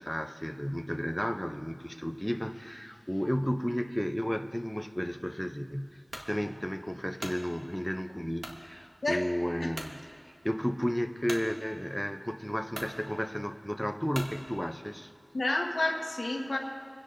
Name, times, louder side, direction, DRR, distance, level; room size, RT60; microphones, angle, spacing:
voice 1, 0.0-10.0 10.3-15.1, equal, 5° left, 7 dB, 0.5 m, -33 dB
sound 1, 6.1-6.3 6.9-7.4 8.4-8.6 9.2-9.3 9.7-10.0 11.3-11.5 12.3-12.4 12.7-13.0 14.1-14.4, right 1 dB, 85° right, 1.2 m, -40 dB
voice 2, 15.3-16.6, left 2 dB, 85° left, 2 dB, 1.1 m, -30 dB
26.0 x 10.0 x 2.6 m, 2.3 s
wide cardioid pair, 45°, 0 cm